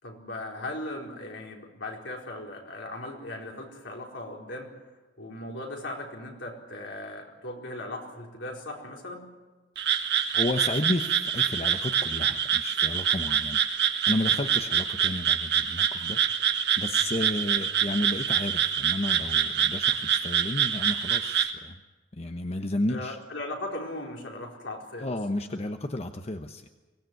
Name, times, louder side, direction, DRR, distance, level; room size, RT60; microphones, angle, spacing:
voice 1, 0.0-4.8 5.2-9.3 22.9-25.1, left 1 dB, 75° left, 0 dB, 4.6 m, -38 dB
Frog, 9.8-21.5, right 8 dB, 65° right, 1.8 m, -26 dB
voice 2, 10.3-21.8 22.1-23.2 25.0-26.7, left 1 dB, 35° left, 6 dB, 1.0 m, -32 dB
24.0 x 18.0 x 9.4 m, 1.2 s
head